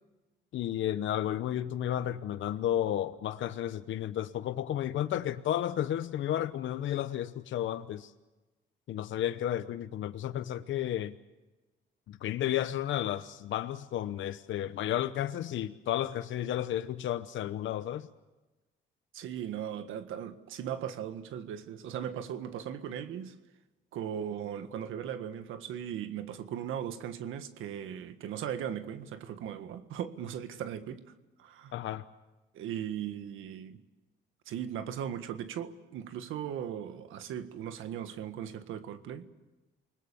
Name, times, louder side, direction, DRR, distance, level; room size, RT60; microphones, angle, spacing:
voice 1, 0.5-8.1 8.9-11.1 12.1-18.1 31.7-32.0, left 11 dB, 75° left, 0.9 m, -32 dB
voice 2, 19.1-23.3 23.9-31.0 31.4-31.7 32.5-33.8 34.4-39.3, right 9 dB, 85° right, 1.7 m, -38 dB
29.0 x 20.5 x 6.9 m
cardioid pair, 90°, 20 cm